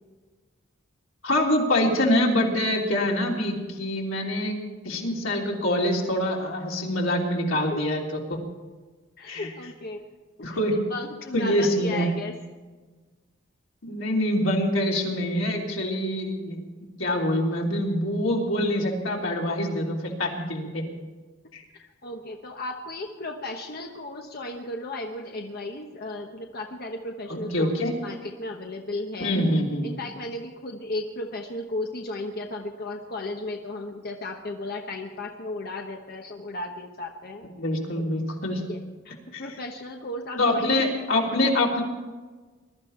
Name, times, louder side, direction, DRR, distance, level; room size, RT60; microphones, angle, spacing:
voice 1, 1.2-4.6 4.8-8.4 9.3-9.5 10.4-10.8 11.3-12.1 13.8-16.6 17.0-20.8 21.5-21.6 27.3-27.9 29.2-29.9 37.6-38.6 39.3-39.4 40.4-41.8, left 1 dB, 90° left, -2 dB, 3.4 m, -25 dB
voice 2, 9.2-10.0 10.4-10.6 10.9-12.4 21.7-27.7 28.0-29.4 29.8-37.4 38.7-40.7, left 2 dB, 50° left, 2 dB, 1.1 m, -35 dB
21.5 x 13.0 x 4.3 m, 1.3 s
head